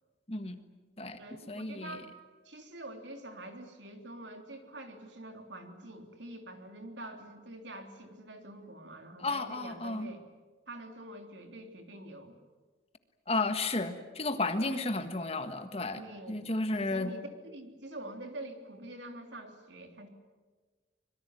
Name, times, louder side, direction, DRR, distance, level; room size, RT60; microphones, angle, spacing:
voice 1, 0.3-0.6 1.0-1.2 1.5-1.9 9.2-10.1 13.3-16.0 16.3-17.1, left 2 dB, 30° left, 8 dB, 1.6 m, -32 dB
voice 2, 1.2-2.1 2.4-10.2 10.7-12.3 16.0-16.5 16.9-20.1, right 1 dB, 75° right, 5 dB, 3.5 m, -46 dB
25.0 x 23.0 x 9.2 m, 1.3 s
head